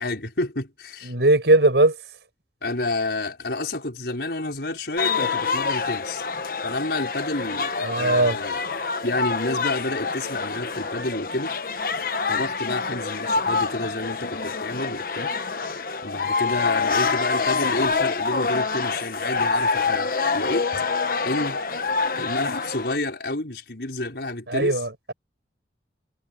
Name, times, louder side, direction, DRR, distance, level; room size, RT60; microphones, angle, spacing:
voice 1, 0.0-1.1 2.6-6.2 6.6-7.7 8.0-8.6 9.0-11.6 12.3-15.3 16.0-20.7 21.3-21.6 22.2-24.8, left 2 dB, 70° left, 5.0 m, -29 dB
voice 2, 1.0-2.0 7.8-8.4 24.5-25.1, right 2 dB, 80° right, 5.4 m, -19 dB
sound 1, 5.0-23.0, left 4 dB, 55° left, 1.1 m, -26 dB
head